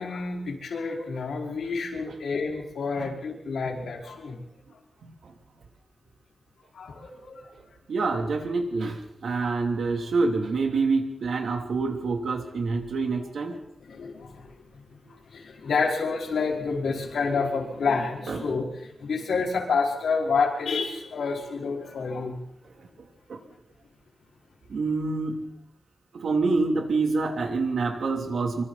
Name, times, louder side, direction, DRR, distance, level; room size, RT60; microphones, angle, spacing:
voice 1, 0.0-4.4 6.7-7.5 9.4-9.5 13.8-14.5 15.3-22.4, left 4 dB, 85° left, -1 dB, 5.2 m, -29 dB
voice 2, 5.0-5.3 7.9-13.6 18.3-18.4 23.3-23.4 24.7-25.5 26.1-28.6, right 3 dB, 65° right, 3 dB, 3.0 m, -27 dB
25.5 x 24.5 x 4.2 m, 0.80 s
wide cardioid pair, 170°, 0 cm